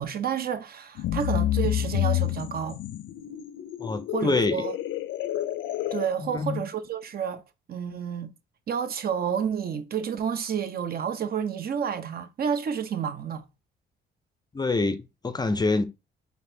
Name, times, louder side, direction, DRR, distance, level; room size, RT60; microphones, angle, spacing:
voice 1, 0.0-2.8 4.1-4.8 5.9-7.4 7.7-8.3 8.7-13.4, right 7 dB, 50° right, 0.6 m, -30 dB
sound 1, 1.0-6.1, left 13 dB, 75° left, 0.4 m, -29 dB
voice 2, 3.8-4.6 6.2-6.6 14.5-15.8, left 3 dB, 20° left, 0.4 m, -26 dB
4.1 x 3.4 x 2.6 m
cardioid pair, 90°, 20 cm